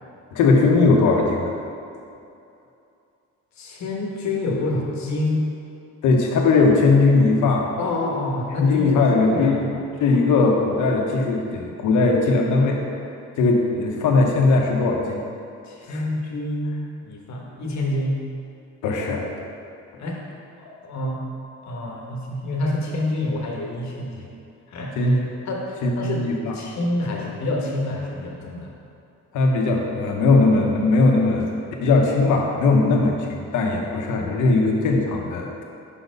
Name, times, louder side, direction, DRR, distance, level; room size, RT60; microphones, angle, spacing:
voice 1, 0.3-1.5 6.0-7.7 8.6-9.6 10.0-12.8 13.4-15.2 18.8-19.3 25.0-25.3 25.8-26.5 29.3-31.5 31.8-35.6, left 3 dB, 80° left, 1 dB, 0.9 m, -19 dB
voice 2, 3.6-5.4 7.8-9.8 15.6-18.2 20.0-20.2 20.6-21.2 21.6-24.3 24.7-25.1 25.4-26.3 26.5-28.7, left 2 dB, 65° left, -1 dB, 1.2 m, -27 dB
5.8 x 4.0 x 5.2 m, 2.6 s
cardioid pair, 90°, 30 cm